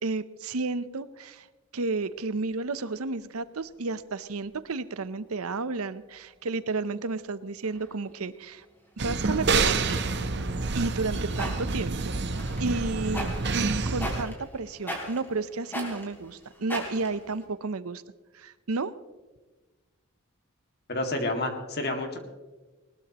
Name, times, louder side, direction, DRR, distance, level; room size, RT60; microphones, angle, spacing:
voice 1, 0.0-1.5 1.7-8.6 9.0-10.0 10.7-12.1 12.6-18.0 18.3-18.9, right 3 dB, 85° right, 14 dB, 0.7 m, -32 dB
sound 1, 1.9-3.5 3.9-4.0 4.2-7.3 7.6-11.8 12.3-17.5, equal, 10° left, 3.3 m, -42 dB
sound 2, 9.0-14.2, right 4 dB, 50° right, 0.9 m, -28 dB
voice 2, 20.9-22.2, left 2 dB, 45° left, 4 dB, 2.2 m, -29 dB
20.0 x 20.0 x 3.0 m, 1.2 s
head